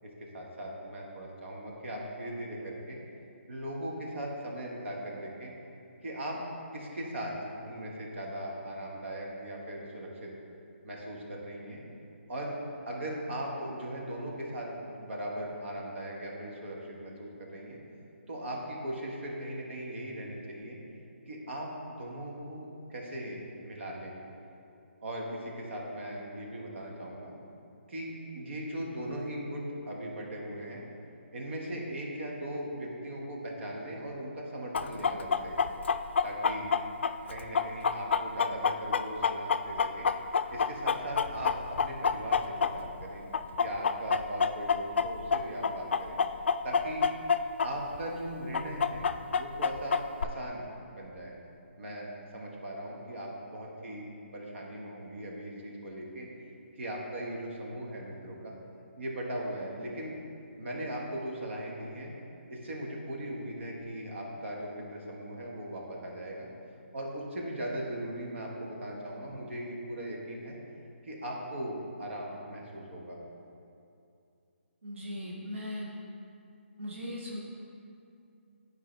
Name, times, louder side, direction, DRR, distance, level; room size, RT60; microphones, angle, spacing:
voice 1, 0.0-3.0 3.5-5.5 6.0-6.4 6.7-7.3 7.6-10.3 10.8-11.8 12.3-12.6 12.8-17.8 18.3-20.8 21.3-21.7 22.0-24.1 25.0-27.3 27.9-30.8 31.3-35.6 36.2-36.7 37.3-40.1 40.5-43.2 43.6-46.2 46.6-47.1 47.6-49.1 49.4-50.6 51.0-51.3 51.8-56.3 56.8-58.5 59.0-60.2 60.6-62.1 62.5-66.5 66.9-70.6 71.0-73.2, right 1 dB, 70° right, -2 dB, 1.5 m, -39 dB
Chicken rooster, 34.7-43.0 43.3-47.7 47.9-48.0 48.5-50.2, left 6 dB, 65° left, 0.3 m, -27 dB
voice 2, 74.8-75.9 76.8-77.4, left 1 dB, 90° right, -5 dB, 1.1 m, -38 dB
9.9 x 4.8 x 3.4 m, 2.6 s
hypercardioid pair, 155°, 7 cm